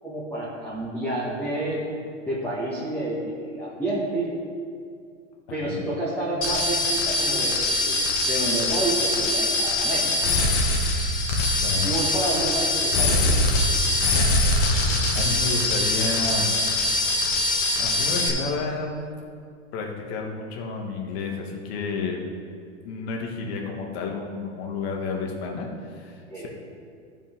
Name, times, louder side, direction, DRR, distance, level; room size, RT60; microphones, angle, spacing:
voice 1, 0.0-2.0 2.2-4.3 5.5-10.4 11.8-13.6 26.3-26.5, right 1 dB, 5° left, -9 dB, 1.5 m, -29 dB
voice 2, 5.5-5.8 11.6-12.0 14.7-14.9 15.1-16.5 17.8-18.9 19.7-22.2 22.8-26.5, left 4 dB, 55° left, 1 dB, 1.7 m, -31 dB
sound 1, 6.4-18.3, left 1 dB, 40° left, 1.5 m, -23 dB
14.5 x 5.5 x 3.7 m, 2.3 s
supercardioid pair, 140°, 36 cm